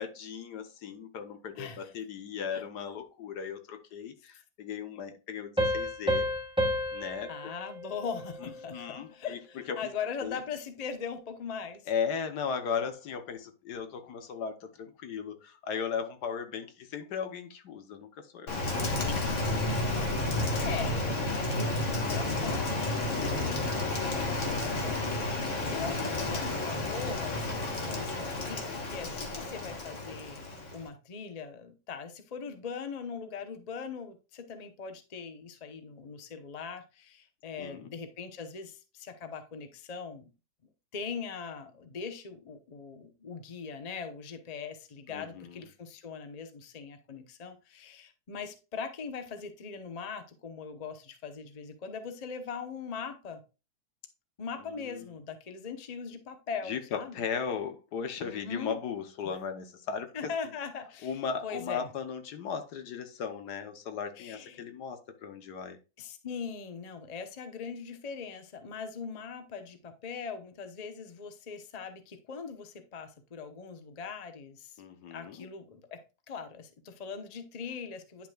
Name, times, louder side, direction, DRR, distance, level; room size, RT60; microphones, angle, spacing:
voice 1, 0.0-6.3 6.9-7.3 8.4-9.9 10.2-10.4 11.9-19.2 19.6-19.8 29.1-29.3 37.6-37.9 45.1-45.6 54.6-55.1 56.6-60.3 61.0-65.8 74.8-75.5, left 6 dB, 70° left, 1.5 m, -37 dB
voice 2, 1.6-1.9 2.5-2.6 7.3-11.8 19.7-30.5 30.7-40.3 40.9-53.4 54.4-57.2 58.2-58.8 60.1-61.9 64.2-64.6 66.0-74.7 75.1-76.0 76.3-78.3, left 6 dB, 30° left, 0.8 m, -41 dB
Piano, 5.6-8.9, equal, 5° right, 1.3 m, -31 dB
Rain, 18.5-30.9, left 2 dB, 45° left, 1.8 m, -31 dB
10.0 x 5.9 x 2.3 m
omnidirectional pair, 1.8 m